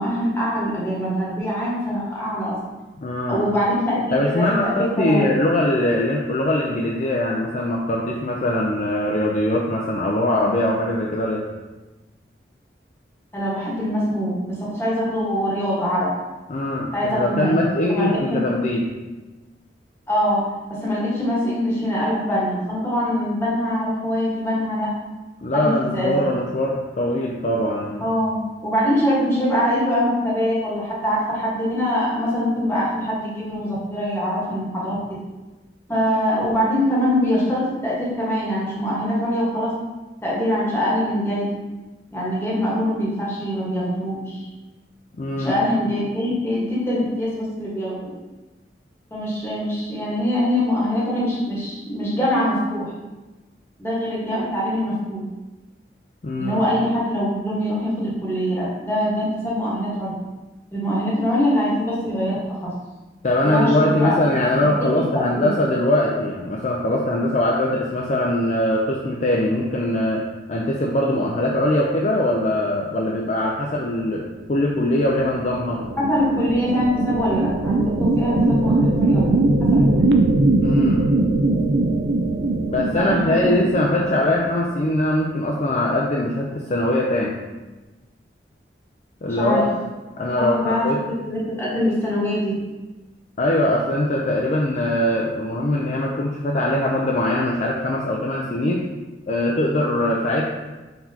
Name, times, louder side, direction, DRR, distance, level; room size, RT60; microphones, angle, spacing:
voice 1, 0.0-2.6 3.3-4.0 4.3-5.3 13.3-14.3 14.6-16.1 16.9-17.5 17.9-18.4 20.1-20.4 20.8-24.9 25.5-26.1 28.0-34.9 35.9-39.7 40.2-41.5 42.1-44.5 45.4-48.0 49.1-52.9 53.8-55.2 56.4-60.1 60.7-62.4 62.6-62.7 63.4-64.2 64.5-64.7 65.3-65.5 76.0-79.4 79.7-80.2 82.9-83.5 89.2-89.7 90.3-90.9 91.2-92.6, equal, 15° left, -7 dB, 1.2 m, -23 dB
voice 2, 3.0-3.5 4.1-11.4 16.5-18.9 25.4-28.1 45.2-45.6 56.2-56.6 63.2-70.2 70.5-74.2 74.5-75.8 80.6-81.0 82.7-87.4 89.2-89.7 90.2-91.0 93.4-98.9 99.3-100.5, left 1 dB, 40° left, -2 dB, 0.4 m, -22 dB
sound 1, 74.9-84.7, right 2 dB, 70° right, 0.4 m, -21 dB
4.4 x 4.0 x 2.8 m, 1.1 s
head